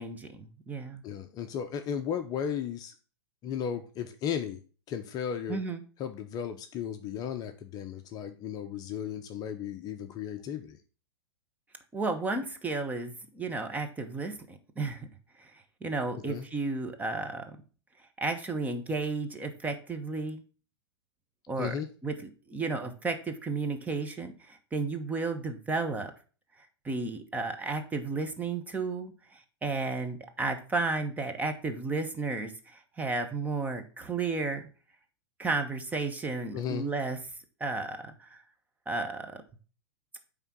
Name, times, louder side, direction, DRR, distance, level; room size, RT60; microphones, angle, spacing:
voice 1, 0.0-1.0 5.5-5.8 11.9-15.1 15.4-15.5 15.8-17.6 18.2-20.4 21.5-21.7 22.0-26.1 26.8-34.7 35.4-37.2 37.6-38.4 38.9-39.4, right 3 dB, 10° right, 6 dB, 1.1 m, -33 dB
voice 2, 1.0-2.9 3.4-4.6 4.9-5.6 6.0-10.8 16.2-16.5 21.6-21.9 36.5-36.8, left 8 dB, 30° left, 7 dB, 0.7 m, -35 dB
8.9 x 3.7 x 6.1 m, 0.37 s
hypercardioid pair, 125°, 14 cm